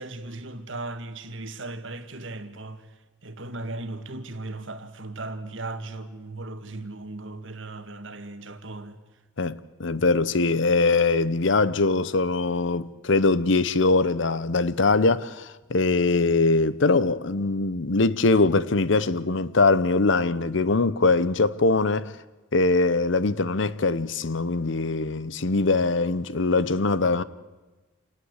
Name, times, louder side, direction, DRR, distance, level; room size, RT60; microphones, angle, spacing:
voice 1, 0.0-9.0, right 2 dB, 65° right, 1.8 m, -37 dB
voice 2, 9.4-22.1 22.5-27.2, left 3 dB, 60° left, 0.8 m, -22 dB
27.5 x 19.0 x 8.1 m
head